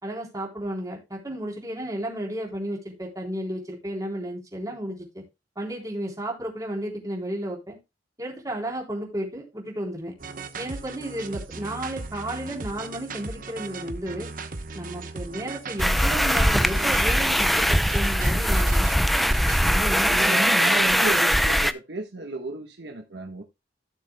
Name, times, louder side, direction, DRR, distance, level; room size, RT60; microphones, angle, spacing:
voice 1, 0.0-5.2 5.6-7.8 8.2-10.1 10.6-14.3 14.7-18.9 19.6-20.4, right 1 dB, 20° right, -2 dB, 3.7 m, -33 dB
sound 1, 10.2-19.8, right 3 dB, 50° right, 1.0 m, -37 dB
sound 2, 15.8-21.7, equal, ahead, 0.4 m, -21 dB
voice 2, 20.1-23.4, right 2 dB, 65° right, 3 dB, 1.4 m, -33 dB
16.5 x 6.8 x 2.2 m, 0.24 s
head